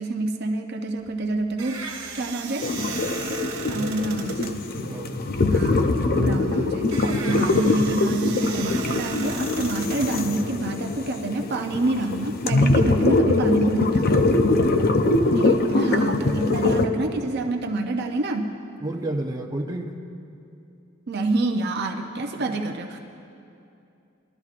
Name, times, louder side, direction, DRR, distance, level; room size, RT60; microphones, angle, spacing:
voice 1, 0.0-1.8 2.1-2.9 3.7-4.7 5.5-14.1 15.4-18.5 21.1-23.0, right 2 dB, 50° right, 3 dB, 0.6 m, -27 dB
sound 1, 1.0-10.9, right 6 dB, 90° right, 1.3 m, -37 dB
sound 2, 2.6-16.9, left 2 dB, 45° left, 0.6 m, -23 dB
voice 2, 3.8-4.3 4.8-5.4 7.3-7.7 14.5-14.7 18.8-20.0, right 1 dB, 20° right, 1 dB, 0.7 m, -32 dB
21.5 x 12.0 x 2.5 m, 2.6 s
head